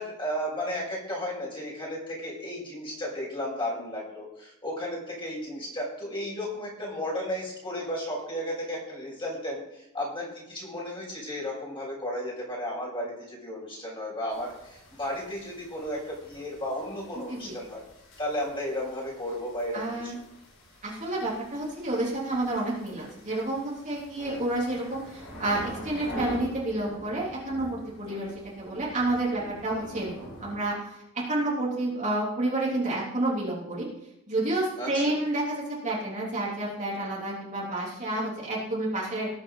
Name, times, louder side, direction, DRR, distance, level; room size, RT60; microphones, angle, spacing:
voice 1, 0.0-17.8 18.2-20.1 24.2-24.4 28.0-28.2 29.3-29.5 29.8-29.9 34.8-35.1, left 1 dB, 25° left, -4 dB, 6.3 m, -34 dB
sound 1, 14.3-30.6, equal, 60° left, 5.9 m, -45 dB
voice 2, 19.7-20.1 20.8-33.8 34.3-39.3, right 2 dB, 35° right, -5 dB, 3.4 m, -30 dB
19.5 x 9.0 x 4.0 m, 0.87 s
head